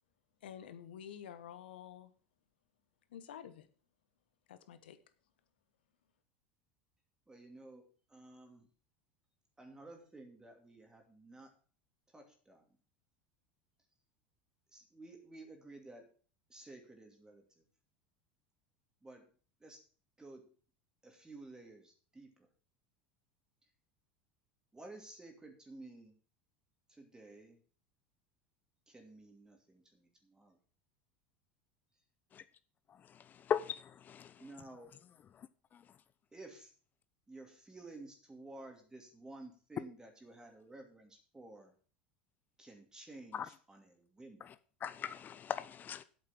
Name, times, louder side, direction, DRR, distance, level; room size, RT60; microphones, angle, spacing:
voice 1, 0.4-2.1 3.1-3.7 4.5-5.0, left 9 dB, 75° left, 11 dB, 1.3 m, -49 dB
voice 2, 7.3-8.7 9.6-11.5 12.1-12.7 14.7-16.1 16.5-17.6 19.0-19.3 19.6-19.8 20.2-20.5 21.0-22.5 24.7-26.1 26.9-27.6 28.9-30.6 34.4-34.9 36.3-36.7 37.3-41.7 42.6-44.5, right 2 dB, 15° right, 3 dB, 2.7 m, -53 dB
voice 3, 33.5-34.3 43.3-43.5 44.8-46.0, left 8 dB, 35° left, 14 dB, 0.7 m, -37 dB
8.4 x 7.3 x 7.3 m, 0.42 s
hypercardioid pair, 85°, 5 cm